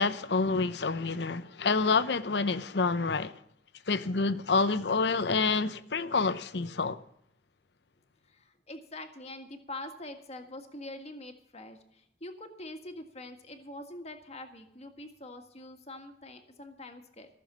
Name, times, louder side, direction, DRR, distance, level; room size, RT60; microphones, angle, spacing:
voice 1, 0.0-3.3 3.9-7.0, left 4 dB, 70° left, 0.7 m, -28 dB
voice 2, 8.3-17.3, left 1 dB, 35° left, 1.7 m, -44 dB
14.5 x 7.0 x 8.6 m
head